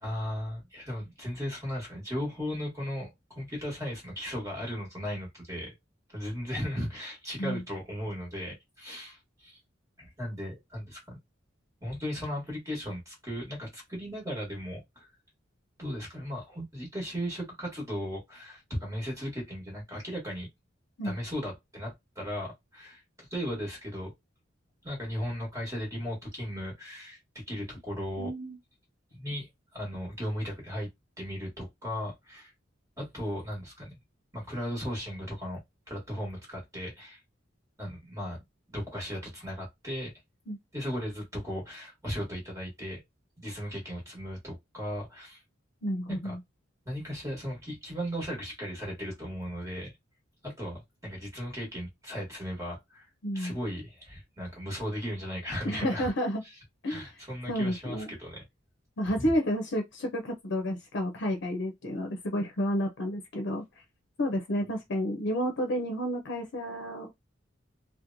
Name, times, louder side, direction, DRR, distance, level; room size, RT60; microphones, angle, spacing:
voice 1, 0.0-5.7 6.1-9.6 10.0-11.2 11.8-15.1 15.8-20.5 21.0-24.1 24.8-27.2 27.5-28.3 29.1-30.9 31.2-32.5 33.0-34.0 34.3-35.6 35.9-37.2 37.8-38.4 38.7-40.1 40.7-43.0 43.4-45.4 46.1-46.3 46.8-49.9 50.4-53.1 53.3-56.1 56.4-56.6 56.9-58.4 59.2-59.3, equal, 15° right, 1.3 m, -36 dB
voice 2, 28.2-28.6 40.5-40.6 45.8-46.4 53.2-53.6 55.6-56.4 56.8-57.1 57.5-58.1 59.0-63.6 64.2-67.1, equal, 65° left, 0.6 m, -30 dB
3.0 x 2.1 x 2.6 m
head